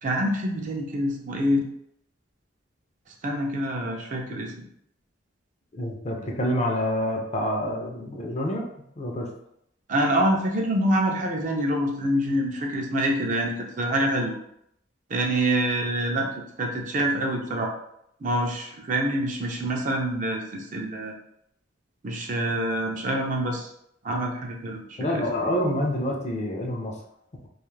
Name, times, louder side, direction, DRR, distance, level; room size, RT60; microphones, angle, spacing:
voice 1, 0.0-1.7 3.2-4.6 9.9-14.4 15.1-16.3 16.6-17.7 18.2-21.1 22.0-23.7 24.0-25.3, right 1 dB, 40° right, 1 dB, 0.4 m, -26 dB
voice 2, 5.7-8.7 9.0-9.3 25.0-26.9, equal, 35° left, 0 dB, 0.5 m, -27 dB
2.4 x 2.3 x 3.1 m, 0.74 s
head